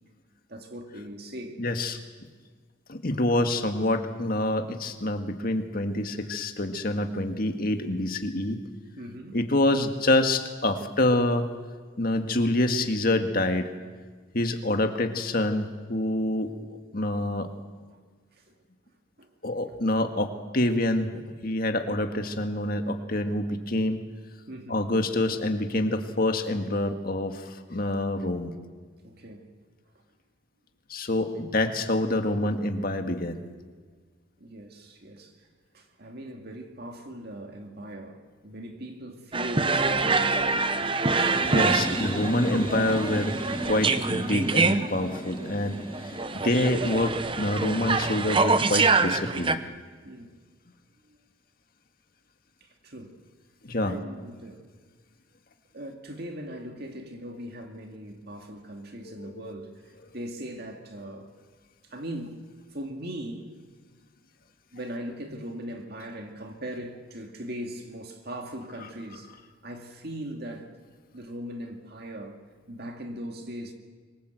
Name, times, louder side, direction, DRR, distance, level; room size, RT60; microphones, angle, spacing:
voice 1, 0.5-1.6 5.2-5.3 9.0-9.4 17.9-18.0 18.4-18.5 19.2-19.3 24.5-24.8 29.0-29.5 31.2-31.4 34.4-35.5 35.7-40.7 50.0-50.3 52.6-53.2 53.8-54.7 55.7-61.3 61.9-62.4 62.7-63.5 64.7-69.3 69.6-70.7 71.1-72.4 72.7-73.7, right 1 dB, 50° right, 2.2 m, -39 dB
voice 2, 1.6-2.0 2.9-8.6 9.3-11.5 12.0-13.7 14.3-17.5 19.4-24.0 24.7-28.5 30.9-33.4 41.1-43.4 43.7-46.1 46.4-49.6 53.6-54.0 59.2-59.3, left 1 dB, 45° left, 1.9 m, -26 dB
sound 1, 39.3-49.5, right 4 dB, 25° right, 0.8 m, -25 dB
sound 2, 41.2-48.7, equal, 15° left, 1.5 m, -36 dB
26.0 x 23.0 x 8.0 m
head